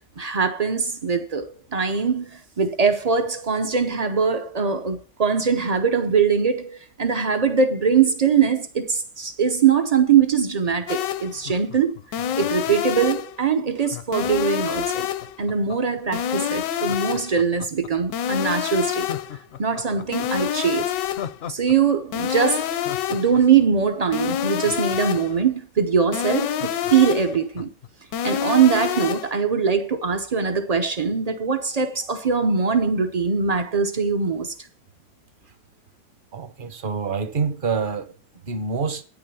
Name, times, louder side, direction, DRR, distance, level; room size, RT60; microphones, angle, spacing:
voice 1, 0.2-12.0 12.4-15.1 15.4-19.1 19.6-20.9 21.5-22.8 23.1-27.7 28.2-34.5, right 6 dB, 75° right, 0.3 m, -22 dB
sound 1, 10.9-11.4 12.1-13.4 14.1-15.4 16.1-17.4 18.1-19.4 20.1-21.4 22.1-23.4 24.1-25.4 26.1-27.4 28.1-29.4, left 10 dB, 80° left, 1.3 m, -27 dB
Laughter, 11.3-13.0 13.8-16.0 16.7-18.1 18.5-18.6 19.0-21.8 22.0-22.1 22.5-25.4 25.8-25.9 26.1-27.9 28.3-28.4, left 9 dB, 60° left, 0.6 m, -39 dB
voice 2, 36.3-38.1 38.5-39.0, right 5 dB, 45° right, 0.7 m, -26 dB
9.3 x 6.3 x 6.9 m
omnidirectional pair, 1.9 m